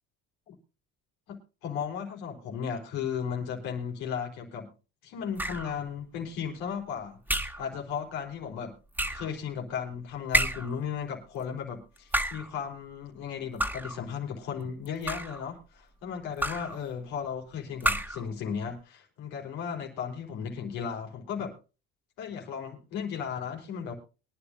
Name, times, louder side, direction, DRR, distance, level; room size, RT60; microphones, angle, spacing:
voice 1, 1.3-4.7 5.0-8.7 9.1-21.5 22.2-23.9, left 7 dB, 85° left, 1 dB, 4.1 m, -35 dB
sound 1, 5.4-5.8 7.3-7.7 8.9-9.3 10.3-10.8 12.0-12.5 13.6-14.0 14.8-15.4 16.4-16.8 17.8-18.3, right 1 dB, 5° right, 1.9 m, -29 dB
23.5 x 10.0 x 2.6 m, 0.32 s
supercardioid pair, 80°, 35 cm